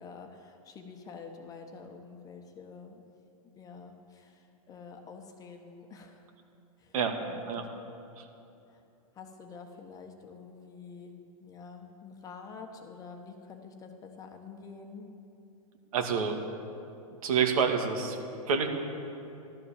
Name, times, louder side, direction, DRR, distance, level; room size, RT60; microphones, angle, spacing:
voice 1, 0.0-3.0 3.5-6.3 6.8-6.9 7.2-7.8 8.7-8.8 9.1-11.1 11.4-15.1, left 5 dB, 20° left, 4 dB, 1.3 m, -48 dB
voice 2, 15.9-16.4 17.2-18.2 18.5-18.7, right 6 dB, 70° right, 4 dB, 2.3 m, -27 dB
15.0 x 12.5 x 7.4 m, 2.8 s
hypercardioid pair, 150°, 19 cm